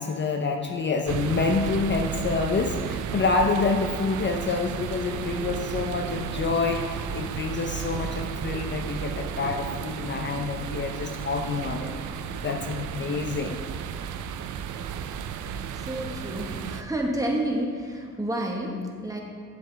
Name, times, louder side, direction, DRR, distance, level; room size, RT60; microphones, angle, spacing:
voice 1, 0.0-11.9 12.4-13.6 16.4-16.5, left 4 dB, 40° left, 4 dB, 0.6 m, -27 dB
sound 1, 1.1-16.8, right 8 dB, 75° right, 0.5 m, -33 dB
voice 2, 15.9-19.2, right 1 dB, 10° right, 0 dB, 1.4 m, -29 dB
9.4 x 7.6 x 3.4 m, 2.2 s
cardioid pair, 90°, 30 cm